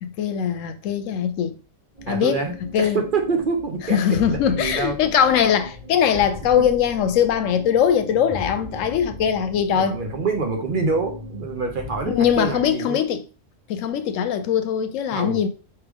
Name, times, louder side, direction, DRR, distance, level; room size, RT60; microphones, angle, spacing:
voice 1, 0.0-1.6 2.1-2.4 2.7-3.0 3.9-10.0 12.1-13.2 13.7-15.5, left 8 dB, 85° left, 1.0 m, -21 dB
sound 1, 1.9-12.7, left 2 dB, 35° right, 1.4 m, -38 dB
voice 2, 2.1-5.0 6.1-6.2 6.6-6.7 9.7-13.0 15.1-15.4, right 4 dB, 50° right, 0.8 m, -26 dB
4.7 x 3.0 x 3.5 m
omnidirectional pair, 1.3 m